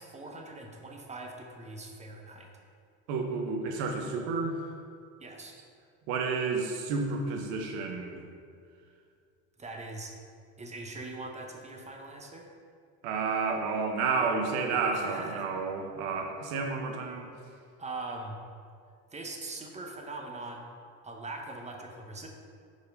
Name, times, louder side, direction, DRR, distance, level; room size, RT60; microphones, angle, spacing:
voice 1, 0.0-2.5 5.2-5.6 9.6-10.1 10.6-12.5 14.9-15.5 17.8-18.4 19.1-20.6 21.0-22.3, right 2 dB, 20° right, 1 dB, 0.8 m, -41 dB
voice 2, 3.1-4.6 6.1-8.2 13.0-17.3, right 4 dB, 90° right, 3 dB, 1.0 m, -31 dB
5.1 x 4.3 x 5.2 m, 2.3 s
cardioid pair, 105°, 37 cm